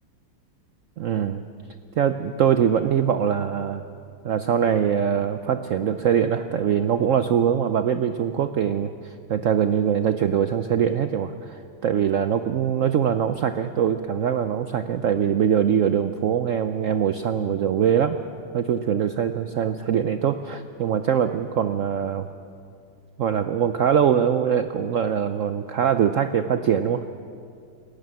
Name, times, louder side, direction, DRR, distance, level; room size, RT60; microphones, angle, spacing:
voice 1, 1.0-1.4 2.0-3.8 4.2-18.2 18.5-22.3 23.2-27.1, right 8 dB, 90° right, 10 dB, 0.6 m, -23 dB
21.0 x 18.0 x 7.7 m, 2.4 s
omnidirectional pair, 2.1 m